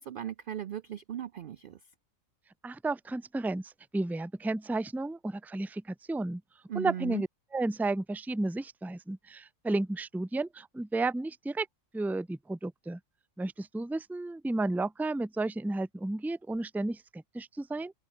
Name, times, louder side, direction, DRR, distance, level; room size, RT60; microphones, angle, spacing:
voice 1, 0.0-1.8 6.7-7.2, right 10 dB, 60° right, 0.6 m, -37 dB
voice 2, 2.6-6.4 6.7-7.3 7.5-11.7 11.9-13.0 13.4-17.9, right 2 dB, ahead, 0.6 m, -32 dB
omnidirectional pair, 1.4 m